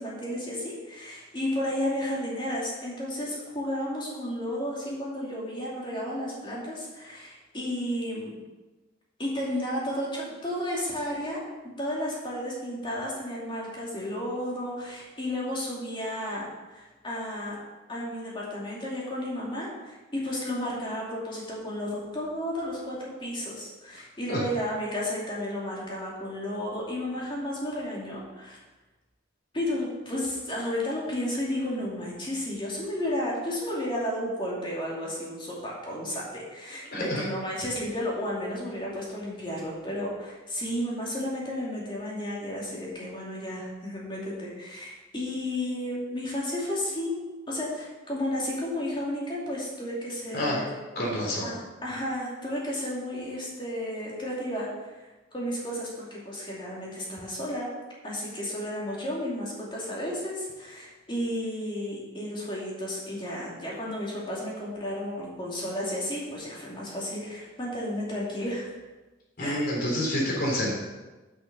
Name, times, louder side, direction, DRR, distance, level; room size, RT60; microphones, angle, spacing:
voice 1, 0.0-8.3 9.2-11.4 11.8-17.6 17.9-28.6 29.5-47.2 47.5-50.7 51.4-55.0 55.3-57.7 58.0-68.7 69.4-69.7, left 1 dB, 25° left, -5 dB, 2.6 m, -32 dB
voice 2, 36.9-37.2 50.3-50.6 51.0-51.5 69.4-70.7, equal, 55° left, -3 dB, 3.5 m, -28 dB
7.8 x 6.6 x 6.8 m, 1.2 s
head